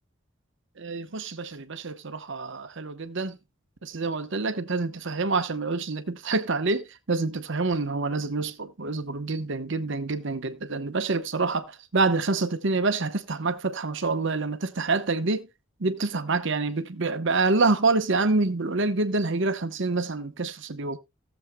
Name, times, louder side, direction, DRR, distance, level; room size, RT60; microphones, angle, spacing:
voice 1, 0.8-3.4 3.8-15.5 15.8-21.0, right 3 dB, 65° right, 0.9 m, -27 dB
18.0 x 7.2 x 2.2 m
head